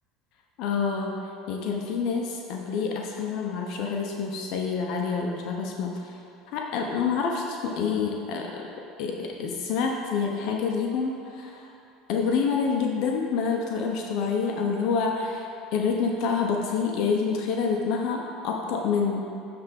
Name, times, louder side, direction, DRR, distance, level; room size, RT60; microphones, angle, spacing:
voice 1, 0.6-1.2 1.5-6.1 6.5-8.7 9.0-11.7 12.1-19.2, left 5 dB, 65° left, 1 dB, 0.8 m, -27 dB
10.0 x 3.5 x 5.3 m, 2.6 s
supercardioid pair, 105°, 0 cm